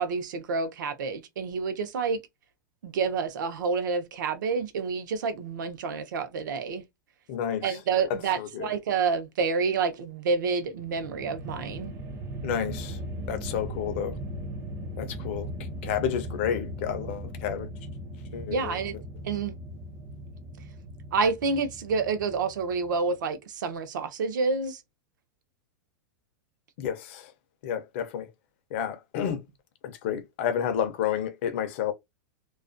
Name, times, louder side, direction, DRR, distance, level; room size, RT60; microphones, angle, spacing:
voice 1, 0.0-2.2 2.8-6.8 7.6-11.9 18.5-18.9 19.2-19.6 21.1-24.8, right 4 dB, 75° right, 0.6 m, -28 dB
voice 2, 7.3-7.8 8.4-8.7 12.4-13.0 13.3-14.2 15.0-15.5 15.8-17.7 18.3-18.8 26.8-27.3 27.6-28.3 28.7-29.4 29.8-31.9, left 9 dB, 35° left, 0.4 m, -30 dB
sound 1, 10.7-23.0, right 1 dB, 25° right, 0.5 m, -38 dB
2.3 x 2.1 x 2.5 m
supercardioid pair, 175°, 10 cm